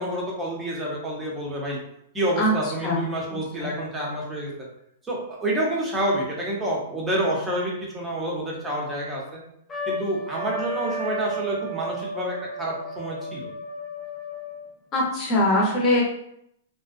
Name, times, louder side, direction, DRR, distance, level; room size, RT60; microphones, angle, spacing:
voice 1, 0.0-1.8 2.1-4.5 5.0-9.4 9.9-13.5, right 1 dB, 15° right, -3 dB, 0.8 m, -28 dB
Trumpet, 9.7-14.7, right 2 dB, 15° left, 0.5 m, -33 dB
voice 2, 14.9-16.0, left 1 dB, 30° left, -3 dB, 0.8 m, -21 dB
2.5 x 2.2 x 2.5 m, 0.73 s
hypercardioid pair, 135°, 0 cm